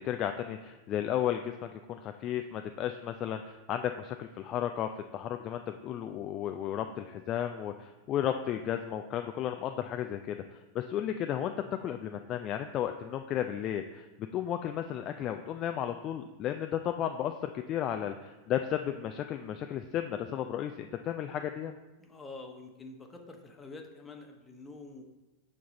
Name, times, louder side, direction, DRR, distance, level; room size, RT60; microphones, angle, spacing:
voice 1, 0.0-11.5 11.8-14.0 14.3-21.7, left 10 dB, 35° left, 6 dB, 0.4 m, -34 dB
voice 2, 22.0-25.0, left 3 dB, 15° left, 4 dB, 1.0 m, -47 dB
6.9 x 6.1 x 4.1 m, 1.1 s
figure-of-eight pair, 90°, 0 cm